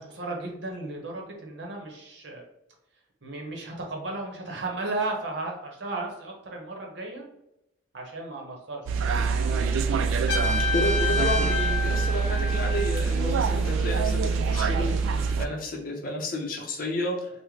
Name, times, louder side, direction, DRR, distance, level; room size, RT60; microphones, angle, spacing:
voice 1, 0.0-2.4 3.2-7.2 7.9-9.3 9.6-9.7, right 2 dB, 65° right, 1 dB, 0.8 m, -35 dB
sound 1, 8.9-15.5, right 5 dB, 90° right, 0.3 m, -25 dB
sound 2, 9.0-15.3, equal, 5° right, 0.3 m, -45 dB
Trumpet, 10.3-13.1, left 4 dB, 80° left, 0.8 m, -29 dB
voice 2, 10.7-17.3, left 1 dB, 45° left, 1 dB, 0.6 m, -31 dB
3.5 x 2.1 x 3.1 m, 0.86 s
head